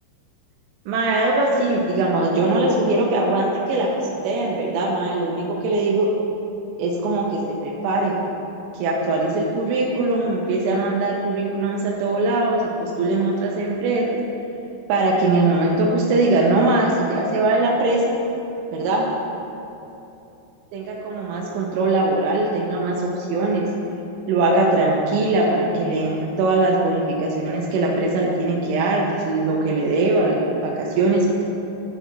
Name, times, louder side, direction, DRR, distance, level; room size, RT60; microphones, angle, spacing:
voice 1, 0.9-6.1 6.8-8.1 8.7-14.2 14.9-18.0 18.7-19.1 20.7-23.7 24.3-31.4, right 2 dB, 85° right, -3 dB, 3.2 m, -21 dB
14.0 x 5.9 x 2.7 m, 2.9 s
omnidirectional pair, 5.3 m